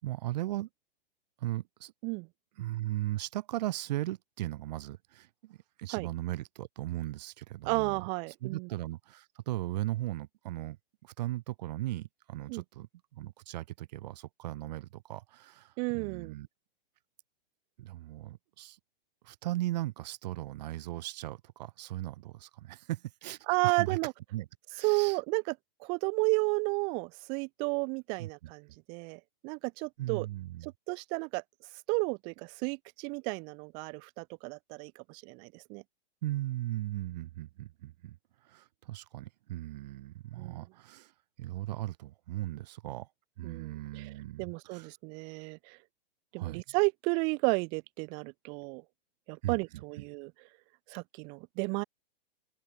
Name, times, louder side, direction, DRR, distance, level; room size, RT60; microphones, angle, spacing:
voice 1, 0.0-0.7 1.4-1.9 2.6-8.0 8.4-10.8 11.0-16.5 17.8-18.8 19.2-24.0 24.3-25.2 28.2-28.5 30.0-30.7 36.2-38.2 38.4-41.1 41.4-43.1 43.4-44.9 46.4-46.8 49.4-49.8, right 16 dB, 45° right, 3.9 m, -37 dB
voice 2, 7.6-8.7 12.5-12.6 15.8-16.3 23.5-24.1 24.8-25.6 25.8-30.3 30.6-31.4 31.9-35.8 40.4-40.6 43.4-44.1 44.4-45.8 46.3-48.8 49.3-50.3 50.9-51.8, right 34 dB, 15° right, 0.5 m, -32 dB
open air
hypercardioid pair, 165°, 29 cm